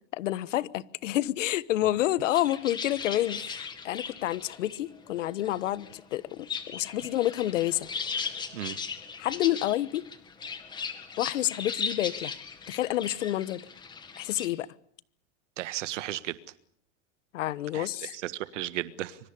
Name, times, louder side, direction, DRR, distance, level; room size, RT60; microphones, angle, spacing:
voice 1, 0.1-7.9 9.2-10.1 11.2-12.3 12.7-13.6 14.2-14.7 17.3-18.1, left 14 dB, 85° left, 1.3 m, -29 dB
sound 1, 2.3-14.5, left 5 dB, 10° left, 1.8 m, -38 dB
voice 2, 15.6-16.4 17.7-19.2, right 14 dB, 80° right, 1.6 m, -35 dB
25.5 x 24.0 x 6.9 m
supercardioid pair, 170°, 36 cm